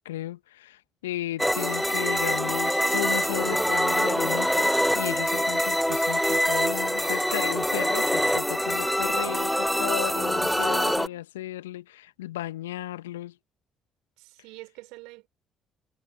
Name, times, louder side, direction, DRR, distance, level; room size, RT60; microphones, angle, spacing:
voice 1, 0.0-13.3, left 15 dB, 80° left, 1.3 m, -35 dB
sound 1, 1.4-11.1, equal, ahead, 0.4 m, -25 dB
voice 2, 1.5-2.9 5.4-5.8 10.6-11.3 14.2-15.3, right 23 dB, 70° right, 4.5 m, -49 dB
figure-of-eight pair, 45°, 0 cm